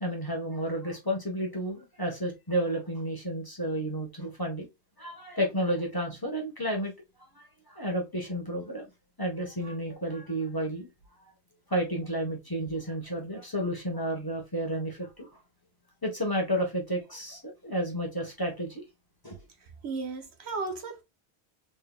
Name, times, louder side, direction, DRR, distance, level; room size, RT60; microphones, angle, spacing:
voice 1, 0.0-4.7 5.0-6.9 7.3-8.9 9.2-10.9 11.2-11.3 11.7-15.3 16.0-18.8 19.2-19.4, equal, 20° left, 1.0 m, -31 dB
voice 2, 19.6-21.0, right 4 dB, 70° right, 1.1 m, -35 dB
3.6 x 3.2 x 2.2 m
omnidirectional pair, 1.1 m